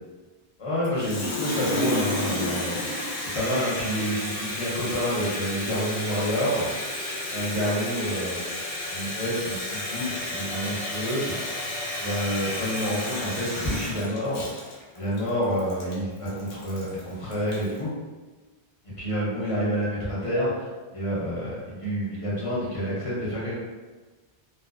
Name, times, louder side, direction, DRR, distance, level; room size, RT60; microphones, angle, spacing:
voice 1, 0.6-2.8 3.3-6.7 7.3-8.5 8.9-11.3 12.0-14.4 15.0-17.9 19.0-23.5, equal, 35° left, -8 dB, 0.7 m, -28 dB
Water tap faucet, 0.8-17.8, left 1 dB, 80° left, 0.8 m, -32 dB
2.4 x 2.2 x 2.3 m, 1.3 s
omnidirectional pair, 1.1 m